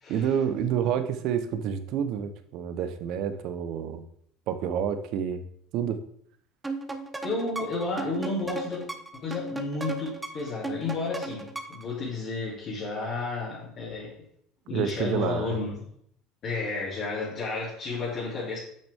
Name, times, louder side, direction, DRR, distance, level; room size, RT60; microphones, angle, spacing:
voice 1, 0.1-4.0 4.5-5.4 5.7-6.0 14.7-15.5, right 8 dB, 60° right, 10 dB, 0.8 m, -28 dB
sound 1, 6.6-11.9, right 2 dB, 15° right, 0.9 m, -36 dB
voice 2, 7.2-8.9 9.2-14.1 14.7-15.8 16.4-18.6, left 3 dB, 50° left, -7 dB, 2.8 m, -32 dB
8.6 x 6.0 x 3.5 m, 0.65 s
hypercardioid pair, 85°, 0 cm